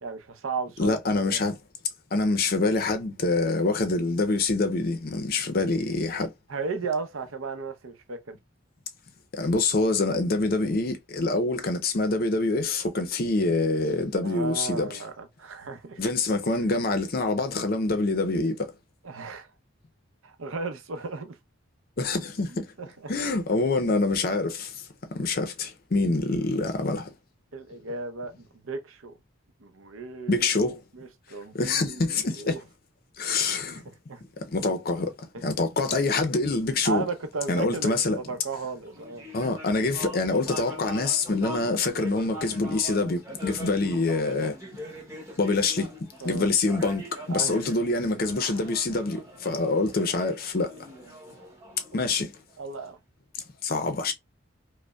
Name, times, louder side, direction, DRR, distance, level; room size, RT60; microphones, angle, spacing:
voice 1, 0.0-1.4 6.5-8.4 14.2-16.0 19.0-19.5 20.2-21.4 22.5-23.1 27.5-29.1 29.6-30.5 30.9-32.0 32.3-32.6 33.5-34.2 35.3-35.4 36.8-39.3 46.2-46.5 47.3-47.6 48.5-48.6 52.6-53.0, right 4 dB, 80° right, 0.7 m, -35 dB
voice 2, 0.8-1.5 2.1-6.3 9.3-15.0 16.0-18.7 22.0-22.7 23.1-24.8 25.1-27.1 30.3-30.8 31.5-32.6 33.2-33.8 34.4-35.1 35.4-37.0 37.5-38.2 39.3-44.6 45.4-45.9 46.2-50.7 51.9-52.4 53.6-54.1, left 3 dB, 45° left, 0.5 m, -26 dB
sound 1, 38.8-52.5, equal, 15° right, 0.8 m, -42 dB
5.0 x 2.1 x 2.3 m
head